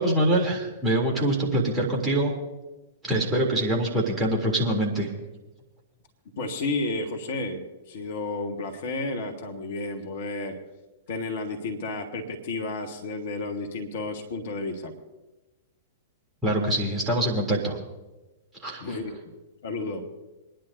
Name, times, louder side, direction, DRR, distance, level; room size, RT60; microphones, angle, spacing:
voice 1, 0.0-2.3 3.0-5.1 16.4-17.8 18.6-18.8, right 1 dB, 15° right, -2 dB, 3.1 m, -24 dB
voice 2, 6.4-10.6 11.1-14.9 18.8-19.2 19.6-20.0, left 3 dB, 50° left, 6 dB, 1.6 m, -32 dB
28.0 x 10.5 x 2.7 m, 1.1 s
figure-of-eight pair, 105°, 0 cm